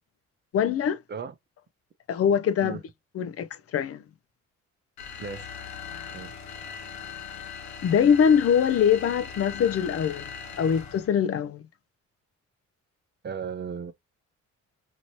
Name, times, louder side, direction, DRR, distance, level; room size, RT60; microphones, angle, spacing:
voice 1, 0.5-1.0 2.1-2.8 3.1-4.0 7.8-10.3 10.6-11.6, left 8 dB, 50° left, 0.5 m, -23 dB
sound 1, 5.0-11.2, left 7 dB, 65° left, 1.1 m, -39 dB
voice 2, 13.2-13.9, right 6 dB, 35° right, 0.6 m, -35 dB
3.0 x 2.8 x 2.7 m
cardioid pair, 90°, 30 cm